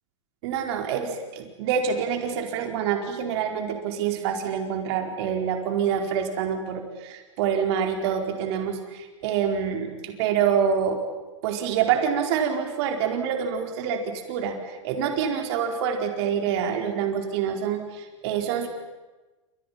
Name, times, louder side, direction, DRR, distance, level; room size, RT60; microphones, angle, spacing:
voice 1, 0.4-11.0 11.4-18.7, right 7 dB, 55° right, 4 dB, 4.5 m, -26 dB
28.5 x 27.0 x 5.9 m, 1.2 s
hypercardioid pair, 110°, 16 cm